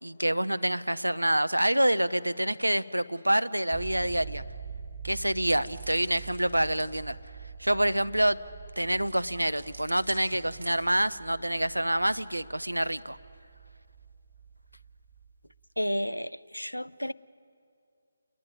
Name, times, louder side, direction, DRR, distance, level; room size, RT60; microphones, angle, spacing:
voice 1, 0.0-4.4 5.0-7.2 7.6-8.4 8.8-13.2, right 1 dB, 85° right, 0.7 m, -27 dB
sound 1, 3.7-15.6, right 6 dB, 40° right, 1.6 m, -45 dB
sound 2, 5.4-7.0 9.0-11.1, right 2 dB, 65° right, 3.2 m, -48 dB
voice 2, 15.8-17.1, equal, 85° left, 0.5 m, -31 dB
29.0 x 11.0 x 9.8 m
figure-of-eight pair, 150°, 0 cm